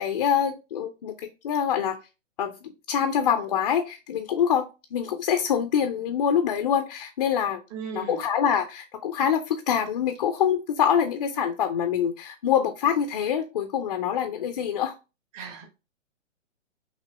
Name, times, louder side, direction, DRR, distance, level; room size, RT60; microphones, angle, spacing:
voice 1, 0.0-2.0 2.4-7.6 7.9-14.9, left 8 dB, 35° left, 7 dB, 0.4 m, -25 dB
voice 2, 7.7-8.2 15.3-15.6, right 5 dB, 30° right, 0 dB, 1.4 m, -36 dB
6.0 x 2.9 x 2.9 m, 0.29 s
hypercardioid pair, 145°, 39 cm